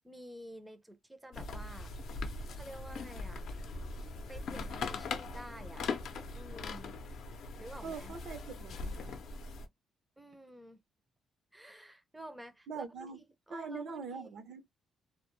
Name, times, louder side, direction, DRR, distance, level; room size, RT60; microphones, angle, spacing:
voice 1, 0.0-1.9 2.5-3.4 4.3-5.9 6.3-7.0 7.6-8.1 10.2-10.8 11.5-14.3, right 1 dB, 10° right, 0.5 m, -50 dB
sound 1, 1.3-9.7, left 3 dB, 70° left, 0.5 m, -40 dB
voice 2, 7.8-9.2 12.7-13.2 13.5-14.7, right 5 dB, 70° right, 0.6 m, -43 dB
2.1 x 2.0 x 2.9 m
cardioid pair, 90°, 0 cm